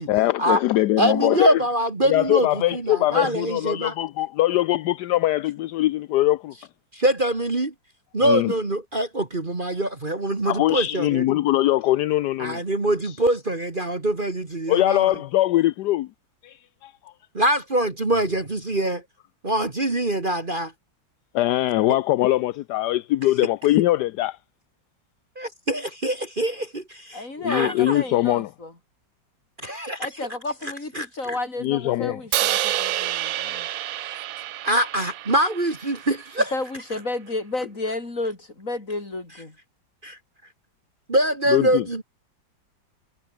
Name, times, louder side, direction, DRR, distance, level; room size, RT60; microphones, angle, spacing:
voice 1, 0.1-1.6 2.1-6.5 8.2-8.5 10.4-12.6 13.0-13.1 14.7-16.1 16.4-16.9 21.3-24.4 27.4-28.5 31.6-32.2 41.5-41.8, left 15 dB, 70° left, 1.0 m, -22 dB
voice 2, 1.0-3.9 6.9-7.7 8.1-11.3 12.4-15.2 17.3-19.0 19.4-20.7 25.4-28.0 29.6-30.1 30.9-31.4 34.0-34.2 34.6-36.5 40.0-40.2 41.1-42.0, right 1 dB, 25° right, 2.1 m, -24 dB
voice 3, 27.1-28.7 30.0-33.7 36.5-39.6, left 2 dB, 40° left, 5.1 m, -32 dB
Crash cymbal, 32.3-36.5, right 13 dB, 85° right, 0.7 m, -28 dB
omnidirectional pair, 2.1 m